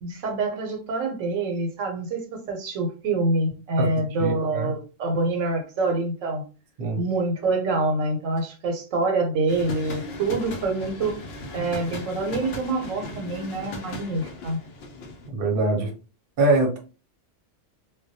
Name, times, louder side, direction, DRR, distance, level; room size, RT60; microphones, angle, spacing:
voice 1, 0.0-6.4 7.0-11.2 11.5-14.6, right 2 dB, 85° right, 4 dB, 1.0 m, -26 dB
voice 2, 4.2-4.7 6.8-7.0 15.3-15.9 16.4-16.8, right 2 dB, 50° right, 1 dB, 0.8 m, -23 dB
sound 1, 9.5-15.3, left 2 dB, 65° left, 0.7 m, -37 dB
2.2 x 2.2 x 2.6 m, 0.34 s
omnidirectional pair, 1.3 m